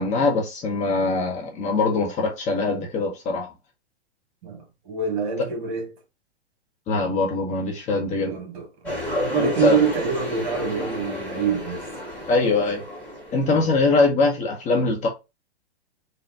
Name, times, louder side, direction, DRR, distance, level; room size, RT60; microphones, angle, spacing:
voice 1, 0.0-3.5 6.9-8.4 9.4-9.8 12.3-12.8 13.3-15.1, left 3 dB, 20° left, 0.8 m, -22 dB
voice 2, 4.4-5.9 8.2-11.9 12.2-12.3 13.4-13.8, right 6 dB, 45° right, 1.4 m, -26 dB
sound 1, 8.8-13.8, equal, 5° left, 1.5 m, -32 dB
3.9 x 2.2 x 3.5 m
hypercardioid pair, 120°, 33 cm